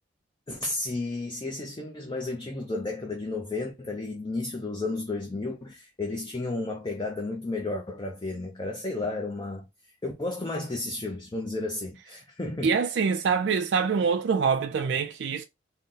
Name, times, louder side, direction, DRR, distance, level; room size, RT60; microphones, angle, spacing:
voice 1, 0.5-9.7 10.0-12.8, left 2 dB, 25° left, 0.5 m, -32 dB
voice 2, 12.6-15.4, right 5 dB, 70° right, 0.3 m, -25 dB
4.0 x 2.1 x 3.7 m
head